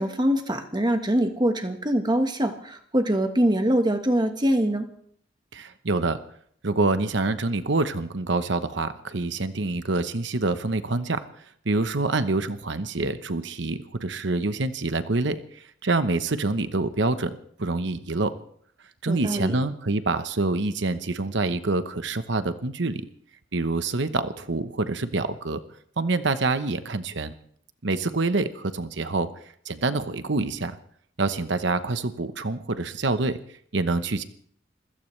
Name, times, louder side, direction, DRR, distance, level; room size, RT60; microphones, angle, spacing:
voice 1, 0.0-4.9 19.1-19.5, right 1 dB, 20° right, 6 dB, 1.5 m, -23 dB
voice 2, 5.5-6.2 6.6-11.3 11.6-18.3 19.0-23.0 23.5-25.6 26.0-27.3 27.8-29.3 29.7-30.8 31.2-33.4 33.7-34.2, right 3 dB, 65° right, 11 dB, 1.0 m, -26 dB
26.5 x 16.0 x 3.3 m, 0.62 s
head